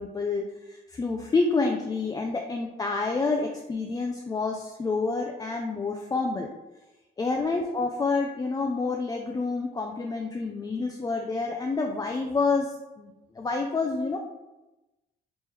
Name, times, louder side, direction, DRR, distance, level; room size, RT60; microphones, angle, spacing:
voice 1, 0.0-6.5 7.2-13.1 13.4-14.2, left 3 dB, 20° left, 1 dB, 0.3 m, -28 dB
3.4 x 3.0 x 3.2 m, 1.0 s
cardioid pair, 90°, 20 cm